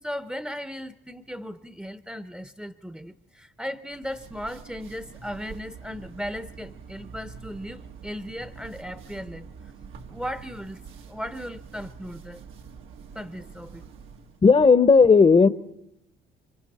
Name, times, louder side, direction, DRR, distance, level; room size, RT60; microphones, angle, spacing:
voice 1, 0.0-9.5 10.1-10.8 11.1-12.4 13.1-13.8, equal, 5° right, 11 dB, 0.8 m, -36 dB
sound 1, 3.9-14.4, right 6 dB, 80° right, 1.7 m, -45 dB
voice 2, 14.4-15.5, left 5 dB, 30° left, 14 dB, 0.9 m, -14 dB
26.5 x 24.5 x 4.3 m, 0.79 s
cardioid pair, 90°, 20 cm